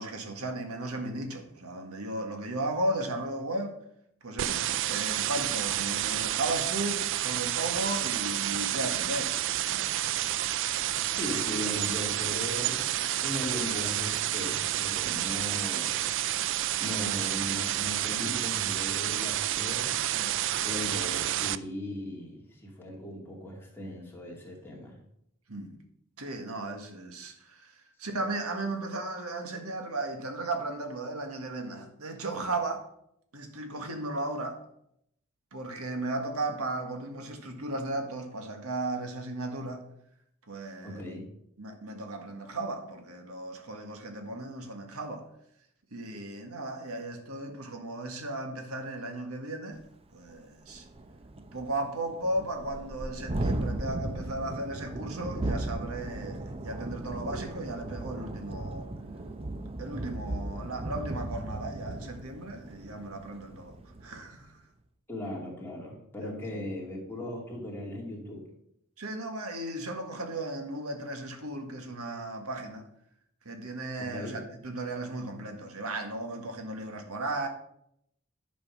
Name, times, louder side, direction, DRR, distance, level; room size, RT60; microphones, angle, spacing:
voice 1, 0.0-3.8 4.2-9.4 9.7-9.9 15.0-15.2 20.1-20.4 25.5-25.7 26.2-27.7 28.0-32.9 33.3-34.6 35.5-39.8 40.5-41.0 41.6-45.3 45.9-49.8 50.1-50.9 51.5-58.9 59.8-63.8 64.0-64.5 66.2-66.3 69.0-72.8 73.5-77.5, right 2 dB, 85° right, 1.7 m, -35 dB
sound 1, 4.4-21.6, right 12 dB, 60° right, 0.4 m, -30 dB
voice 2, 11.1-12.9 13.2-16.0 16.8-19.9 20.6-24.9 40.8-41.2 65.1-68.5 74.0-74.4, left 1 dB, 10° left, 2.5 m, -38 dB
Thunderstorm, 49.8-49.9 50.3-50.4 50.7-64.3, right 2 dB, 25° right, 0.7 m, -36 dB
10.5 x 5.2 x 6.2 m
head